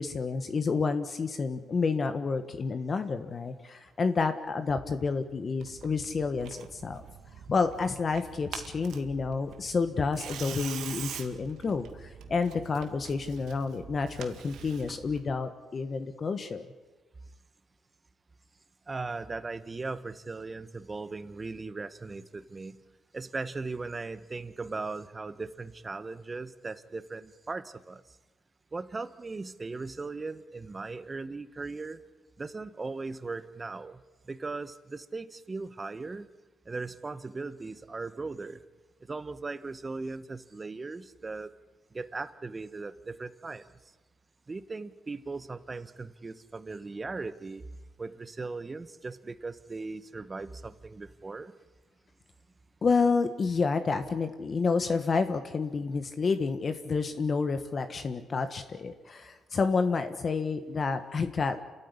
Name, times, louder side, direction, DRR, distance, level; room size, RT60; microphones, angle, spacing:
voice 1, 0.0-7.0 7.5-16.7 52.8-61.6, left 4 dB, 40° left, 9 dB, 1.5 m, -29 dB
Tearing, 5.6-15.2, right 8 dB, 80° right, 2.0 m, -44 dB
voice 2, 18.9-22.8 23.1-28.0 28.7-32.0 32.4-36.3 36.6-38.6 39.1-41.5 41.9-43.7 44.5-47.6 48.0-51.5, right 3 dB, 25° right, 12 dB, 1.3 m, -38 dB
28.5 x 13.5 x 9.8 m, 1.2 s
cardioid pair, 90°, 0 cm